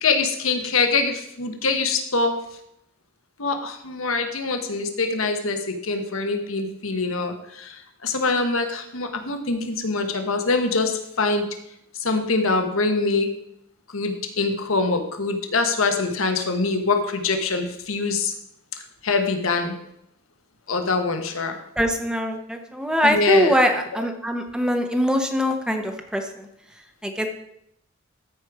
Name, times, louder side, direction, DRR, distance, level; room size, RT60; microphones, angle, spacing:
voice 1, 0.0-2.4 3.4-11.5 12.0-13.3 13.9-18.3 19.0-19.8 20.7-21.6 23.0-23.6 23.9-24.0, left 3 dB, 85° left, 6 dB, 1.2 m, -24 dB
voice 2, 21.8-26.5 27.0-27.3, equal, 5° right, 5 dB, 0.9 m, -22 dB
13.5 x 5.0 x 4.8 m, 0.77 s
head